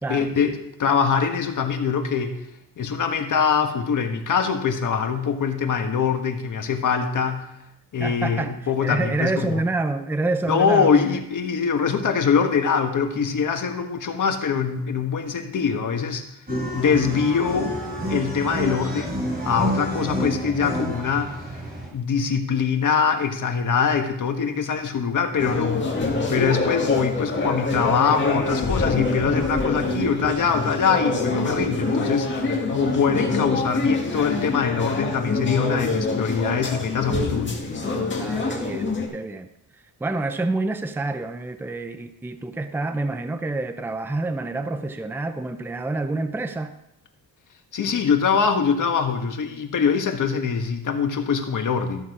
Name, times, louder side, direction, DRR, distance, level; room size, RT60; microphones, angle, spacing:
voice 1, 0.1-2.3 2.8-7.5 7.9-9.6 10.5-16.2 16.7-17.7 18.1-21.4 21.9-25.9 26.3-37.6 47.7-52.1, left 6 dB, 55° left, 5 dB, 1.4 m, -23 dB
voice 2, 8.0-11.2 38.2-39.5 40.0-46.7, right 2 dB, 5° right, 9 dB, 0.5 m, -27 dB
sound 1, 16.5-21.9, equal, 25° right, 3.9 m, -29 dB
sound 2, 25.4-39.1, left 2 dB, 30° left, 2.1 m, -25 dB
14.0 x 7.3 x 4.8 m, 0.82 s
wide cardioid pair, 135°, 37 cm